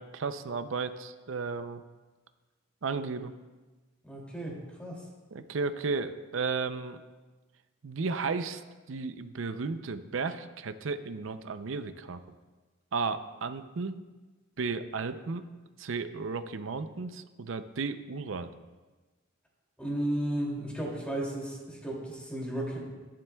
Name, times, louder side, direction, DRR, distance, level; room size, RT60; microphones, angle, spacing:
voice 1, 0.0-1.8 2.8-3.3 5.3-7.0 7.8-8.6 8.9-12.2 12.9-14.0 14.6-15.4 15.8-18.5, right 4 dB, 65° right, 10 dB, 0.5 m, -34 dB
voice 2, 4.0-5.0 19.8-22.8, right 1 dB, 5° left, -3 dB, 2.6 m, -34 dB
19.5 x 7.6 x 2.3 m, 1.3 s
head